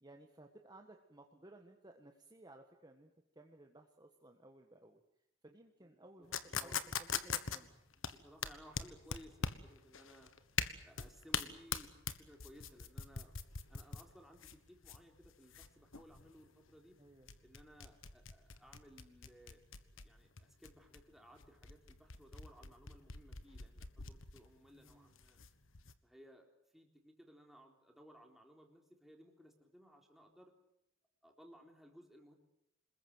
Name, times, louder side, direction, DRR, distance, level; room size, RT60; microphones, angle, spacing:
voice 1, 0.0-5.0 5.4-7.8 17.0-17.3 24.7-25.1, right 1 dB, 20° right, 3 dB, 1.5 m, -59 dB
voice 2, 5.8-6.8 8.0-10.3 10.8-13.4 13.7-17.0 17.4-25.4 26.0-30.5 31.2-32.4, equal, ahead, 1 dB, 3.7 m, -60 dB
sound 1, 6.3-25.9, left 6 dB, 70° left, 1.4 m, -43 dB
27.0 x 21.0 x 7.9 m, 0.79 s
head